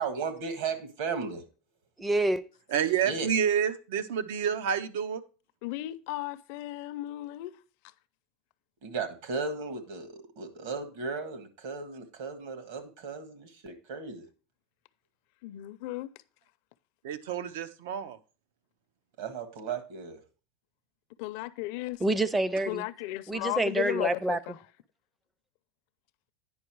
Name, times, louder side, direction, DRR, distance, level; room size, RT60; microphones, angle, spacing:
voice 1, 0.0-1.4 3.0-3.3 8.8-14.3 19.2-20.2, right 5 dB, 65° right, 1.7 m, -35 dB
voice 2, 2.0-2.4 22.0-22.8 23.3-24.4, right 2 dB, 10° right, 0.4 m, -27 dB
voice 3, 2.7-5.2 17.0-18.2, right 8 dB, 90° right, 0.7 m, -29 dB
voice 4, 5.6-7.6 15.4-16.1 21.2-22.0 22.7-24.6, left 18 dB, 60° left, 0.5 m, -35 dB
9.5 x 5.4 x 4.6 m
supercardioid pair, 165°, 0 cm